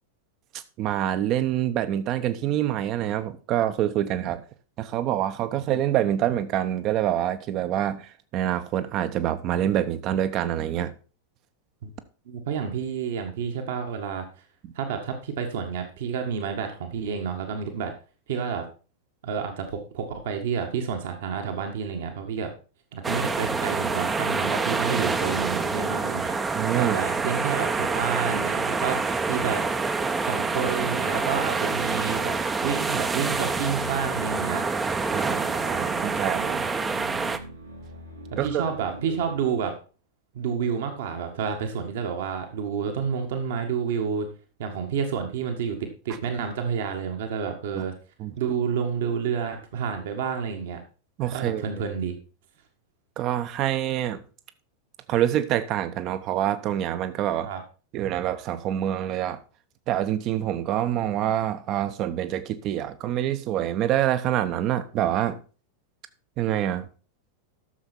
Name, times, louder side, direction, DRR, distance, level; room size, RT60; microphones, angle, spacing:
voice 1, 0.8-4.4 4.8-10.9 26.5-27.0 35.1-36.7 38.4-38.6 47.8-47.9 48.2-48.3 51.2-51.6 53.2-54.2 55.1-57.5 57.9-59.4 59.9-65.4 66.4-66.9, right 11 dB, 35° right, 1.0 m, -26 dB
voice 2, 12.2-14.3 14.7-17.9 18.3-18.6 19.2-22.5 22.9-29.7 30.3-34.6 38.3-39.7 40.3-44.3 44.6-47.9 48.4-50.8 51.3-52.2 57.4-57.6, right 6 dB, 55° right, 1.8 m, -29 dB
sound 1, 23.0-37.4, right 4 dB, 15° right, 0.9 m, -27 dB
sound 2, 28.5-39.6, equal, 90° right, 3.5 m, -45 dB
12.5 x 7.0 x 4.4 m
figure-of-eight pair, 90°, 0 cm